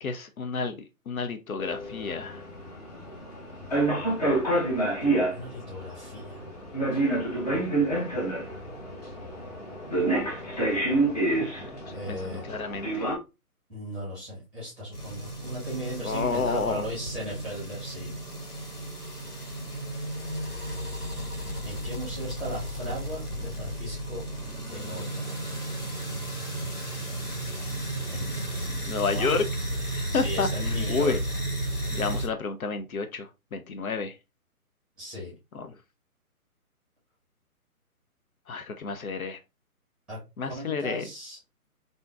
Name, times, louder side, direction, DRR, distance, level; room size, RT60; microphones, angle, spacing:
voice 1, 0.0-2.4 11.4-11.5 11.9-13.1 16.0-16.8 28.9-29.5 29.9-31.2 31.9-34.1 35.5-35.7 38.5-39.4 40.4-41.1, left 5 dB, 70° left, 0.5 m, -30 dB
sound 1, 1.6-13.2, right 2 dB, 25° left, 0.8 m, -28 dB
voice 2, 5.3-6.4 11.9-12.4 13.7-18.2 18.5-18.8 21.6-24.2 24.6-25.4 28.1-28.5 28.9-29.3 30.1-31.2 35.0-35.3 40.1-40.2 40.5-41.4, equal, ahead, 0.9 m, -37 dB
sound 2, 14.9-32.3, right 1 dB, 90° left, 1.5 m, -33 dB
3.4 x 2.6 x 2.3 m
figure-of-eight pair, 140°, 45 cm